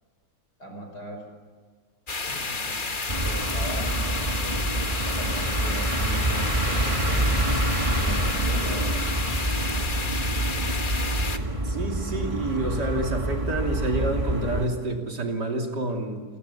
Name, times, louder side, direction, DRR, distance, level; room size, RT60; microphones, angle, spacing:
voice 1, 0.6-1.2 2.3-2.8 3.2-7.2 7.9-9.0, equal, 65° left, 3 dB, 6.4 m, -39 dB
sound 1, 2.1-11.4, left 3 dB, 30° left, 1.6 m, -31 dB
sound 2, 3.1-14.7, right 1 dB, 20° right, 2.0 m, -27 dB
voice 2, 11.6-16.2, right 2 dB, 70° right, 2 dB, 3.5 m, -28 dB
29.0 x 22.5 x 7.1 m, 1.6 s
omnidirectional pair, 1.8 m